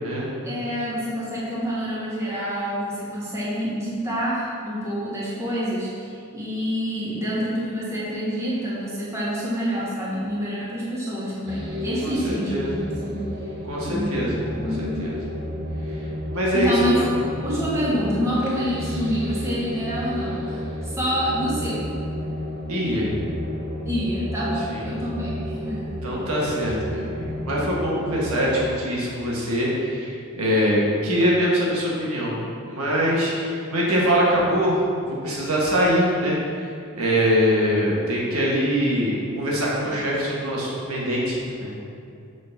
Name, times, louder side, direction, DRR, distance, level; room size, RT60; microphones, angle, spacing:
voice 1, 0.4-13.2 13.9-15.0 16.5-21.8 23.8-26.0, equal, 15° right, -8 dB, 1.5 m, -27 dB
sound 1, 11.5-28.7, equal, 55° right, 1.3 m, -32 dB
voice 2, 12.0-12.7 13.7-15.1 16.3-17.1 22.7-23.1 24.7-24.9 26.0-36.7 36.9-41.7, equal, 90° right, -5 dB, 1.6 m, -23 dB
6.2 x 4.0 x 5.9 m, 2.5 s
head